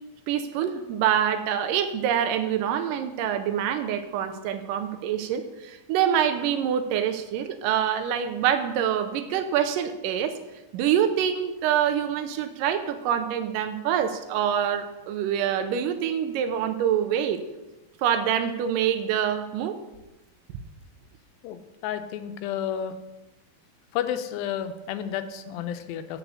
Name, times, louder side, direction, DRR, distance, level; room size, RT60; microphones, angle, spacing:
voice 1, 0.3-10.3 10.7-17.4 18.0-19.8, right 9 dB, 80° right, 8 dB, 2.2 m, -25 dB
voice 2, 21.4-22.9 23.9-26.2, left 9 dB, 90° left, 9 dB, 2.4 m, -31 dB
8.1 x 5.2 x 6.9 m, 1.0 s
omnidirectional pair, 4.0 m